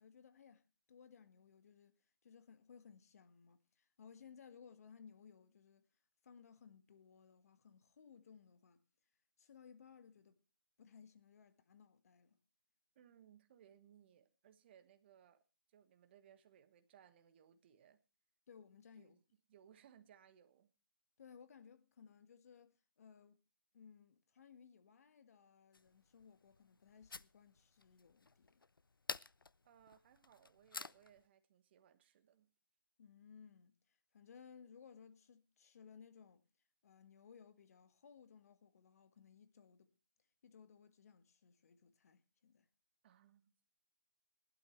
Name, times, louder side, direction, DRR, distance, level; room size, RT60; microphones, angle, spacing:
voice 1, 0.0-1.9 2.2-5.9 6.2-8.8 9.4-10.4 10.8-12.4 18.5-19.2 21.2-23.4 23.7-28.6 33.0-36.4 36.8-39.9 40.4-42.7, left 6 dB, 45° left, 1.6 m, -61 dB
voice 2, 12.9-15.4 15.7-18.0 19.0-19.2 19.5-20.7 29.6-32.5 43.0-43.5, right 9 dB, 30° right, 1.4 m, -66 dB
sound 1, 25.7-31.3, left 4 dB, 85° left, 0.6 m, -51 dB
20.0 x 12.0 x 3.1 m
figure-of-eight pair, 150°, 11 cm